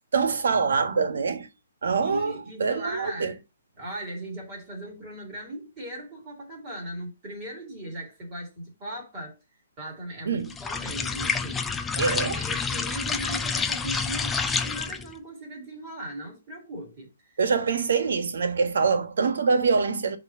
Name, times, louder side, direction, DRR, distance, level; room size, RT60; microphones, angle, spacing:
voice 1, 0.1-1.5 1.8-2.3 2.6-3.3 10.2-10.5 12.0-12.4 17.4-20.2, right 5 dB, 65° right, 1.4 m, -24 dB
voice 2, 2.0-3.4 3.8-9.4 9.8-17.3, right 1 dB, 20° right, 2.6 m, -38 dB
sound 1, 10.5-15.1, left 5 dB, 5° left, 0.3 m, -28 dB
8.0 x 3.2 x 5.6 m
hypercardioid pair, 175°, 0 cm